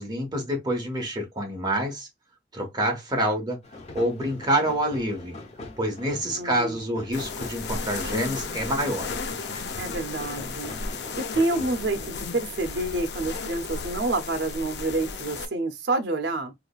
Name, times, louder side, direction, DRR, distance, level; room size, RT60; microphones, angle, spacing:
voice 1, 0.0-2.1 2.5-3.6 3.9-5.4 5.8-9.1, right 1 dB, 25° right, 1.2 m, -27 dB
sound 1, 3.6-12.2, left 2 dB, 40° left, 0.7 m, -42 dB
voice 2, 6.3-6.8 9.8-10.7 11.2-16.5, right 2 dB, 75° right, 0.6 m, -28 dB
sound 2, 7.1-15.5, left 4 dB, 70° left, 0.5 m, -34 dB
4.8 x 2.3 x 2.3 m
head